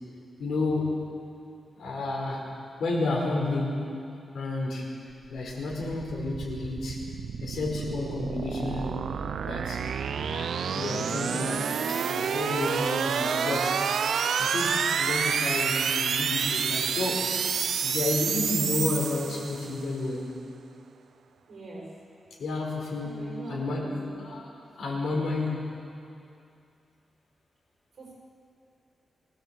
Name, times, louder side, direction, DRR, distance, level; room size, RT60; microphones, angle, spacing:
voice 1, 0.4-1.1 1.8-2.4 2.8-3.9 4.3-4.9 5.3-7.0 7.4-9.1 9.5-9.8 10.3-13.8 14.4-17.3 17.8-20.3 22.4-25.8, left 2 dB, 75° left, -2 dB, 4.8 m, -31 dB
sound 1, 5.5-19.8, right 7 dB, 75° right, 0.7 m, -29 dB
voice 2, 21.5-21.9 23.0-24.2 28.0-28.1, right 1 dB, 55° right, -3 dB, 6.7 m, -42 dB
22.0 x 16.0 x 7.7 m, 2.5 s
wide cardioid pair, 160°, 0 cm